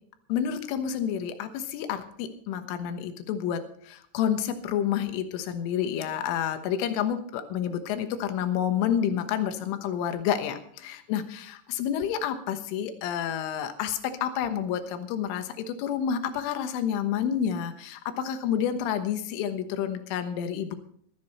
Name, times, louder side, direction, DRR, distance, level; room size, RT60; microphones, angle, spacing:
voice 1, 0.3-20.8, left 9 dB, 85° left, 9 dB, 3.7 m, -29 dB
14.5 x 14.0 x 4.2 m, 0.63 s
omnidirectional pair, 5.5 m